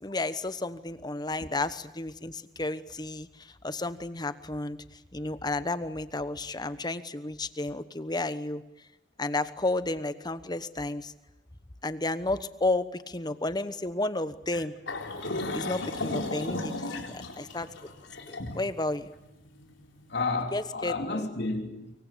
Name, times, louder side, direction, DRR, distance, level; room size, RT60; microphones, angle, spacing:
voice 1, 0.0-3.3 3.6-4.8 5.1-8.6 9.2-11.1 11.8-14.7 15.5-17.0 17.4-17.7 18.3-19.1 20.5-21.2, left 2 dB, 20° left, 1.1 m, -32 dB
sound 1, 14.9-20.0, left 2 dB, 80° left, 4.1 m, -35 dB
voice 2, 20.1-21.9, left 3 dB, 60° left, 3.4 m, -32 dB
25.0 x 23.5 x 8.5 m
head